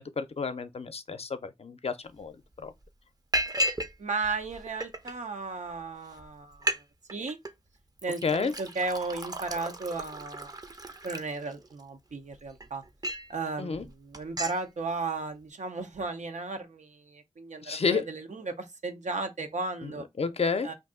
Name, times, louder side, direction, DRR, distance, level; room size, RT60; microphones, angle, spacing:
voice 1, 0.0-2.4 2.6-2.7 8.2-8.5 13.6-13.8 17.6-18.0 19.8-19.9 20.2-20.7, left 5 dB, 55° left, 0.5 m, -30 dB
Liquid, 2.2-2.3 2.6-2.8 3.3-3.9 4.2-5.1 5.8-5.9 6.2-6.3 6.5-6.8 7.1-7.5 8.0-11.8 12.3-13.3 13.7-13.9 14.1-14.6, equal, 30° right, 0.5 m, -34 dB
voice 2, 4.0-6.8 7.1-7.4 8.0-10.6 11.0-12.8 13.3-20.0 20.6-20.7, right 3 dB, 80° right, 0.6 m, -35 dB
2.6 x 2.6 x 3.6 m
cardioid pair, 40°, 12 cm